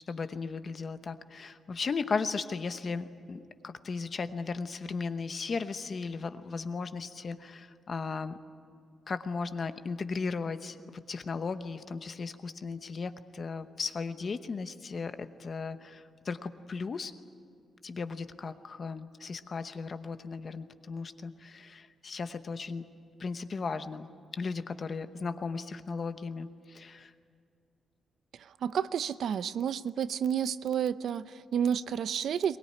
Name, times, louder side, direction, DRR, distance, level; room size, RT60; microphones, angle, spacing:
voice 1, 0.1-8.4 9.1-17.1 17.8-22.9 23.2-27.1, left 4 dB, 35° left, 0.9 m, -36 dB
voice 2, 28.3-32.6, right 8 dB, 60° right, 0.6 m, -30 dB
22.5 x 20.5 x 9.9 m
wide cardioid pair, 170°, 0 cm